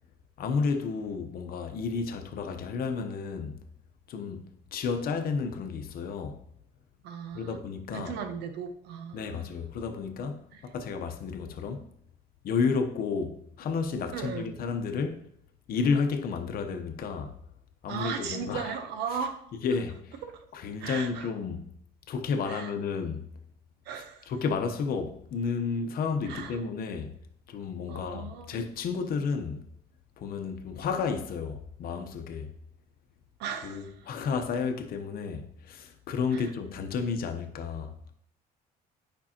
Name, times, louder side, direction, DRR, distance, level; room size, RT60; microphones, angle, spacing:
voice 1, 0.4-3.6 4.1-6.4 7.3-8.2 9.1-11.8 12.4-15.2 15.7-17.4 17.8-18.7 19.6-20.2 20.5-21.7 22.1-23.3 23.9-27.2 27.5-29.7 30.2-32.5 33.6-37.9, left 5 dB, 60° left, 0.9 m, -32 dB
voice 2, 7.0-7.6 7.9-9.5 10.5-10.6 14.1-14.5 17.9-19.4 20.2-20.3 20.8-21.3 22.5-22.7 23.9-24.3 26.2-26.6 27.9-28.6 33.4-33.9 36.3-36.5, right 7 dB, 80° right, 0.9 m, -37 dB
8.6 x 5.4 x 2.9 m
cardioid pair, 110°, 17 cm